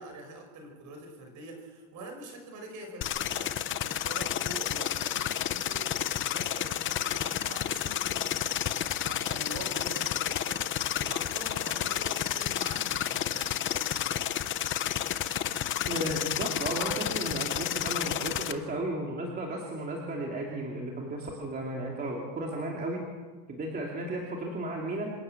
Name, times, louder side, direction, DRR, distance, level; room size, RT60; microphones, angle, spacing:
voice 1, 0.0-14.6, right 2 dB, 40° right, 5 dB, 5.3 m, -45 dB
sound 1, 3.0-18.5, left 11 dB, 25° left, 0.7 m, -31 dB
voice 2, 15.9-23.0 23.5-25.1, right 1 dB, 20° right, -1 dB, 2.5 m, -34 dB
26.5 x 14.0 x 8.9 m, 1.4 s
cardioid pair, 180°, 47 cm